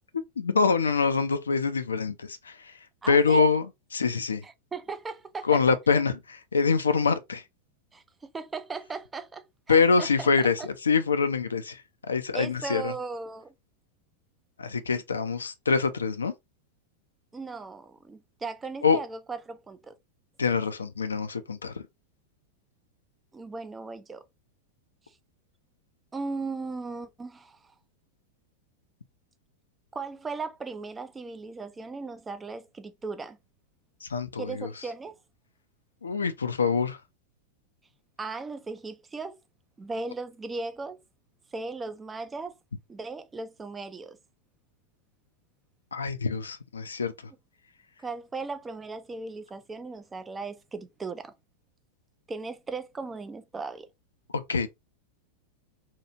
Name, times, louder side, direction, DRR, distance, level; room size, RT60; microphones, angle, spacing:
voice 1, 0.4-2.7 3.1-4.4 5.4-7.4 9.7-12.9 14.6-16.3 18.8-19.0 20.4-21.8 34.0-34.7 36.0-37.0 45.9-47.1 54.5-54.7, left 5 dB, 75° left, 0.4 m, -25 dB
voice 2, 3.0-3.4 4.4-5.6 7.9-10.7 12.3-13.5 17.3-20.0 23.3-24.2 26.1-27.7 29.9-33.4 34.4-35.1 38.2-39.4 39.8-41.0 41.5-42.6 42.9-44.2 48.0-51.3 52.3-53.9, right 4 dB, 15° right, 0.3 m, -37 dB
2.8 x 2.3 x 2.8 m
figure-of-eight pair, 90°, 0 cm